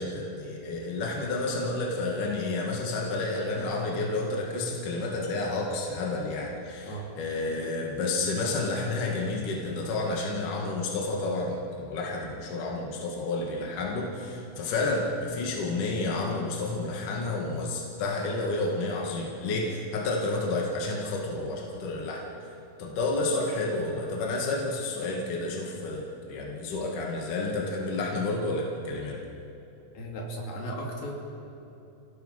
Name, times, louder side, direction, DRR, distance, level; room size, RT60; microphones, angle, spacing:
voice 1, 0.0-22.2 22.8-29.2, left 2 dB, 65° left, -2 dB, 3.6 m, -30 dB
voice 2, 29.9-31.1, right 1 dB, 80° left, -1 dB, 4.8 m, -36 dB
29.5 x 17.5 x 5.8 m, 2.9 s
omnidirectional pair, 4.1 m